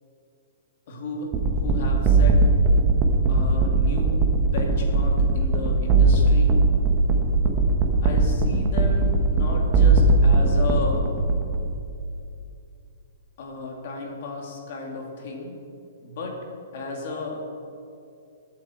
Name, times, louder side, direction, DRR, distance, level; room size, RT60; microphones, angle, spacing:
voice 1, 0.9-2.4 3.3-6.6 8.0-11.2 13.4-15.5 16.0-16.4 16.7-17.4, left 3 dB, 40° left, 0 dB, 2.5 m, -33 dB
sound 1, 1.3-11.8, right 3 dB, 20° right, 1.0 m, -20 dB
20.0 x 8.3 x 4.5 m, 2.5 s
hypercardioid pair, 175°, 0 cm